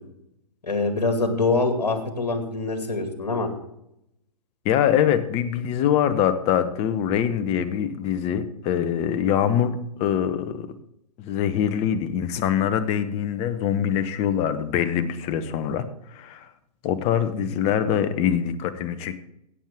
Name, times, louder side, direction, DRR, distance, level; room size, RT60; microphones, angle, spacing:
voice 1, 0.6-3.5, left 3 dB, 80° left, 5 dB, 2.3 m, -24 dB
voice 2, 4.6-10.7 11.2-16.5 16.8-19.2, left 9 dB, 30° left, 12 dB, 1.0 m, -24 dB
17.0 x 7.5 x 3.6 m, 0.80 s
hypercardioid pair, 120°, 20 cm